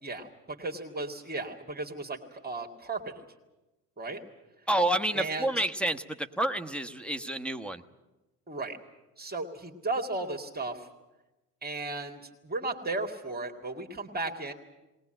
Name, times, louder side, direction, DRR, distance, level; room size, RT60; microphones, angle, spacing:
voice 1, 0.0-3.2 4.0-4.2 5.1-5.5 8.5-8.8 9.2-10.9 11.6-14.5, right 2 dB, 20° right, 2 dB, 2.2 m, -35 dB
voice 2, 4.7-7.8, right 1 dB, ahead, 10 dB, 1.2 m, -29 dB
20.0 x 19.0 x 9.0 m, 1.0 s
hypercardioid pair, 75°, 47 cm